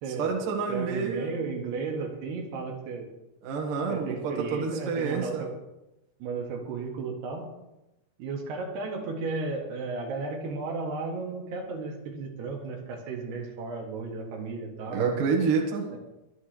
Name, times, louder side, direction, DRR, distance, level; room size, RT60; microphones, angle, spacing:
voice 1, 0.2-1.3 3.4-5.4 14.9-15.9, right 5 dB, 60° right, 1 dB, 3.2 m, -28 dB
voice 2, 0.7-3.1 3.9-5.5 6.2-7.5 8.2-15.1 15.9-16.0, right 4 dB, 85° right, 0 dB, 4.1 m, -34 dB
23.5 x 10.0 x 3.4 m, 0.95 s
omnidirectional pair, 4.5 m